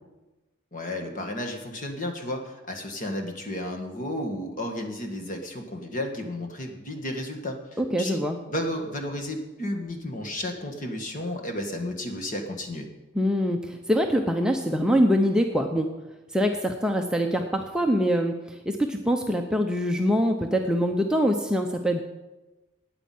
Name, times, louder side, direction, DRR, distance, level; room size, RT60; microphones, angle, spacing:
voice 1, 0.7-8.2 8.5-12.9, left 1 dB, 40° left, 4 dB, 1.6 m, -33 dB
voice 2, 7.8-8.4 13.1-15.9 16.3-22.0, equal, 5° right, 2 dB, 0.6 m, -24 dB
9.7 x 9.3 x 7.7 m, 1.1 s
head